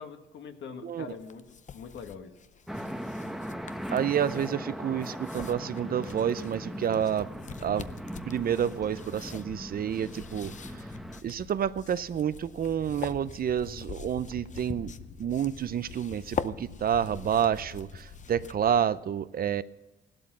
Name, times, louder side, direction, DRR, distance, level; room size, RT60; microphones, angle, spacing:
voice 1, 0.0-2.4, left 6 dB, 65° left, 6 dB, 1.5 m, -43 dB
sound 1, 1.1-18.8, left 7 dB, 40° left, 0.6 m, -44 dB
sound 2, 2.7-11.2, equal, ahead, 0.9 m, -39 dB
voice 2, 3.9-7.3 7.6-7.9 8.2-10.9 11.2-14.9 15.2-19.6, right 9 dB, 50° right, 15 dB, 0.6 m, -29 dB
sound 3, 7.5-18.8, left 4 dB, 85° left, 2.2 m, -47 dB
16.0 x 12.0 x 6.1 m, 1.0 s
cardioid pair, 90°, 20 cm